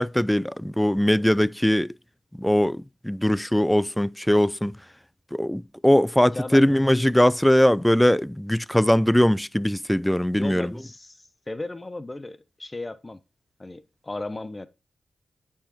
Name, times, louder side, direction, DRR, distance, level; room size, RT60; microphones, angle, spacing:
voice 1, 0.0-1.9 2.3-4.8 5.3-10.7, equal, 5° left, 0.4 m, -21 dB
voice 2, 6.3-6.7 10.4-13.2 13.6-14.7, left 2 dB, 30° left, 0.9 m, -35 dB
8.8 x 5.0 x 4.2 m
supercardioid pair, 40°, 0 cm